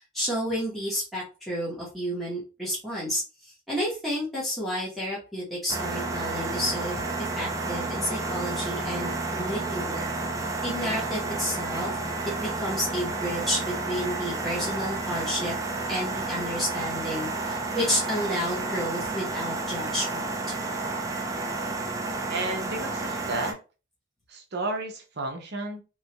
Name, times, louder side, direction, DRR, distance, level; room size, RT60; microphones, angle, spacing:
voice 1, 0.1-10.1 10.6-12.0 12.4-15.5 15.9-20.4, equal, ahead, -7 dB, 1.0 m, -31 dB
sound 1, 5.7-23.5, right 3 dB, 15° right, 0.4 m, -31 dB
voice 2, 22.3-23.6 24.3-25.8, right 2 dB, 55° right, 3 dB, 0.7 m, -32 dB
3.1 x 2.4 x 2.8 m, 0.32 s
head